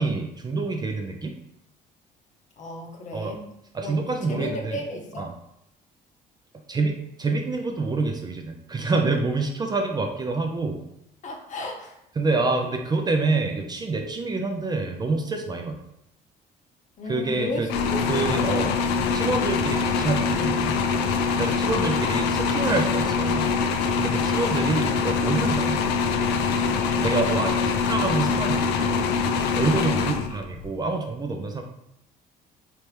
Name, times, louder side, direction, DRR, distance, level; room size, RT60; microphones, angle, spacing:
voice 1, 0.0-1.3 3.1-3.3 3.7-4.8 5.2-5.3 6.7-10.8 12.2-15.8 17.1-17.7 18.1-18.7 19.1-20.8 21.4-23.5 24.0-25.9 27.0-29.0 29.5-31.6, right 3 dB, 25° right, 3 dB, 0.4 m, -27 dB
voice 2, 2.6-3.4 3.8-4.0 4.3-5.3 11.2-12.0 17.0-17.6 17.9-18.7 21.7-22.8 24.3-24.9 27.3-27.5, left 1 dB, 45° left, 2 dB, 0.8 m, -35 dB
sound 1, 17.7-30.7, left 5 dB, 90° left, 0.4 m, -24 dB
3.3 x 2.9 x 3.1 m, 0.80 s
cardioid pair, 110°, 17 cm